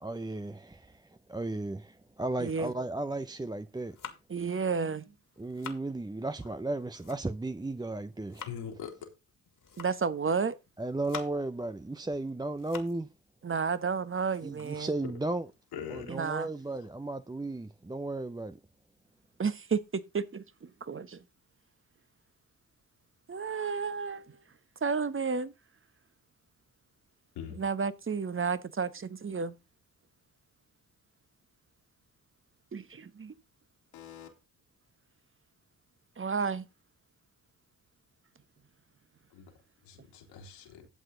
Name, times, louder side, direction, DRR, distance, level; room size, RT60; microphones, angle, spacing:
voice 1, 0.0-4.0 5.4-8.5 10.8-13.1 14.4-15.5 15.9-18.6, right 2 dB, 10° right, 0.7 m, -35 dB
voice 2, 2.4-2.7 4.3-5.1 9.8-10.6 13.4-14.9 16.1-16.5 19.4-21.2 23.3-24.4 24.8-25.5 27.6-29.5 32.7-33.3 36.2-36.6, right 5 dB, 30° right, 1.2 m, -32 dB
sound 1, 3.7-4.4 5.1-5.9 6.6-7.5 7.9-8.6 9.5-10.1 10.7-11.6 12.0-13.1 13.4-13.5 13.9-15.7, left 7 dB, 55° left, 2.4 m, -48 dB
voice 3, 8.5-8.9 15.0-15.1 15.7-16.2 27.3-27.6 33.9-34.3 39.3-39.5 39.8-40.9, left 8 dB, 80° left, 3.1 m, -42 dB
12.5 x 7.8 x 3.9 m
hypercardioid pair, 45°, 39 cm